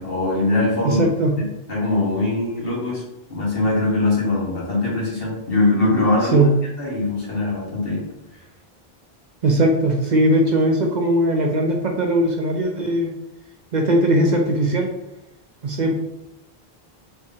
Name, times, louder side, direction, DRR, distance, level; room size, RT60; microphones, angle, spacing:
voice 1, 0.0-1.1 1.7-3.0 3.3-6.5 6.8-8.0, left 2 dB, 65° left, -5 dB, 1.7 m, -21 dB
voice 2, 0.8-1.4 6.3-6.5 9.4-13.1 13.7-14.9 15.6-15.9, right 1 dB, 55° right, 2 dB, 0.6 m, -19 dB
4.4 x 3.6 x 2.7 m, 0.88 s
omnidirectional pair, 1.0 m